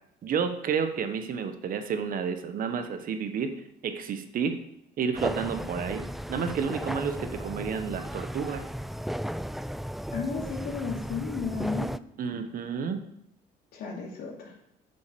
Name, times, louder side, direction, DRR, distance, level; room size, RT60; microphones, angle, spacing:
voice 1, 0.2-4.5 5.0-8.7 12.2-13.0, right 6 dB, 55° right, 8 dB, 1.3 m, -31 dB
sound 1, 5.2-12.0, equal, ahead, 0.3 m, -35 dB
voice 2, 10.1-11.9 13.7-14.5, left 5 dB, 70° left, -3 dB, 3.0 m, -33 dB
9.1 x 6.8 x 6.9 m, 0.77 s
cardioid pair, 110°, 17 cm